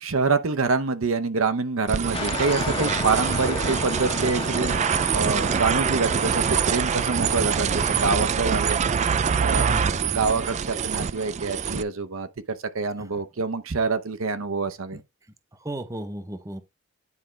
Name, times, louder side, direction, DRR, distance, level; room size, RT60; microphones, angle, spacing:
voice 1, 0.0-4.8 5.1-8.8 9.4-9.7 10.1-15.0, right 4 dB, 70° right, 0.8 m, -26 dB
sound 1, 1.9-11.8, right 6 dB, 35° right, 0.3 m, -25 dB
sound 2, 2.1-8.1, left 4 dB, 25° left, 0.9 m, -34 dB
voice 2, 9.6-10.0 14.9-15.0 15.6-16.6, right 1 dB, 15° right, 0.8 m, -33 dB
9.8 x 5.0 x 3.3 m
head